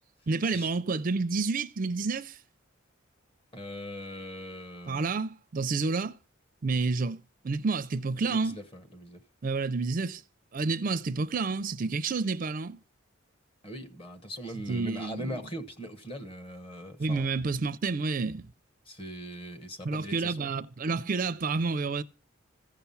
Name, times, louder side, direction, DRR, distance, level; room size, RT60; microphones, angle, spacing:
voice 1, 0.3-2.4 4.9-6.1 6.6-8.6 9.4-10.2 10.5-12.8 14.7-15.4 17.0-18.4 19.8-22.0, right 4 dB, 40° right, 0.4 m, -29 dB
voice 2, 3.5-5.1 8.2-9.2 13.6-17.3 18.9-20.5, equal, 25° left, 1.1 m, -40 dB
15.0 x 5.8 x 5.6 m
head